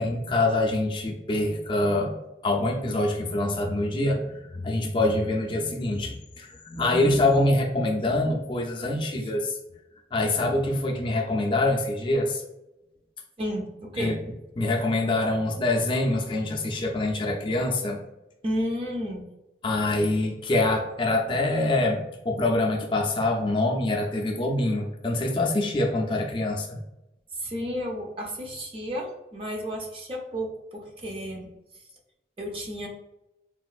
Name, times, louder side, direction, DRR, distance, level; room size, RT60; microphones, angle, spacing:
voice 1, 0.0-2.2 2.4-9.6 10.1-12.4 14.0-14.2 14.6-18.0 19.6-22.0 22.2-26.8, left 2 dB, 30° left, 1 dB, 0.4 m, -25 dB
voice 2, 13.4-14.2 18.4-19.2 27.3-31.5 32.4-32.9, equal, 30° right, 1 dB, 0.5 m, -32 dB
3.8 x 2.4 x 2.3 m, 0.94 s
head